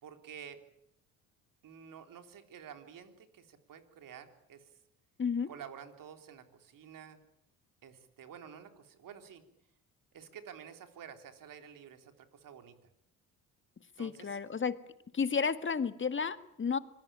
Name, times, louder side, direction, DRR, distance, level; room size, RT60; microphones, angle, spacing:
voice 1, 0.0-0.6 1.6-4.7 5.5-7.2 7.8-9.4 10.1-12.8 14.0-14.4, right 8 dB, 55° right, 7 dB, 3.7 m, -50 dB
voice 2, 14.0-14.8 15.1-16.8, left 5 dB, 30° left, 12 dB, 1.8 m, -32 dB
26.0 x 20.0 x 8.8 m, 0.76 s
hypercardioid pair, 65°, 38 cm